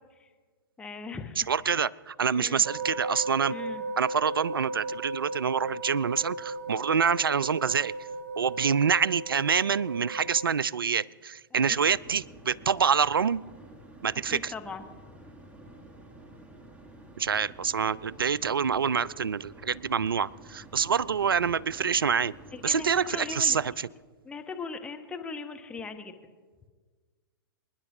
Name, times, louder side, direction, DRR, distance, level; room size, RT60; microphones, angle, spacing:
voice 1, 0.8-1.4 1.6-1.7 2.3-2.6 3.5-3.8 11.5-11.8 14.3-14.9 22.1-22.2 22.5-23.6 24.2-26.1, left 5 dB, 10° left, 5 dB, 0.9 m, -39 dB
voice 2, 1.5-3.5 4.0-7.9 8.4-13.4 14.0-14.5 17.2-22.3 22.6-23.9, right 6 dB, 80° right, 23 dB, 0.4 m, -26 dB
sound 1, 2.6-10.5, right 2 dB, 45° right, 1.1 m, -36 dB
sound 2, 11.8-23.7, right 1 dB, 10° right, 1.1 m, -50 dB
26.0 x 10.5 x 2.7 m, 1.5 s
figure-of-eight pair, 110°, 12 cm